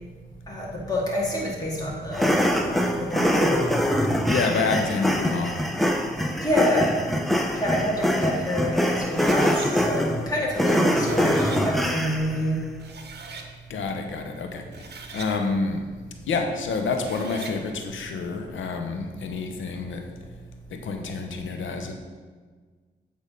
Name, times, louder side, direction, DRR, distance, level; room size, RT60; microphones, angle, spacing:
voice 1, 0.5-2.4 2.6-3.6 6.4-6.9 7.6-12.6, left 1 dB, 20° left, -5 dB, 2.1 m, -27 dB
sound 1, 2.1-12.4, equal, ahead, 0.8 m, -24 dB
voice 2, 4.3-5.6 13.7-15.9 16.3-20.0 20.7-21.9, left 4 dB, 80° left, 4 dB, 0.9 m, -28 dB
sound 2, 9.1-9.7 10.7-11.6 12.4-12.5 12.8-13.5 14.6-15.3 16.8-17.6, right 4 dB, 60° right, 0.9 m, -40 dB
8.4 x 3.6 x 5.1 m, 1.5 s
cardioid pair, 60°, 20 cm